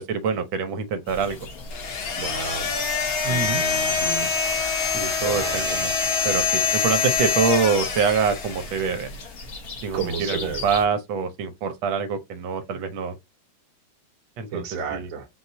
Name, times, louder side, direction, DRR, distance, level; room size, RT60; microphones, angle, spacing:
voice 1, 0.0-1.4 3.2-3.6 4.9-5.9 6.2-9.1 9.8-13.1 14.4-14.6 14.9-15.1, right 5 dB, 80° right, 1.4 m, -25 dB
sound 1, 1.1-10.9, left 2 dB, 55° left, 1.4 m, -39 dB
sound 2, 1.7-9.1, left 5 dB, 80° left, 1.8 m, -25 dB
voice 2, 2.2-2.7 3.3-4.3 5.2-5.6 9.9-10.7 12.7-12.8 14.5-15.3, right 5 dB, 55° right, 1.2 m, -32 dB
4.3 x 2.3 x 4.0 m
omnidirectional pair, 2.2 m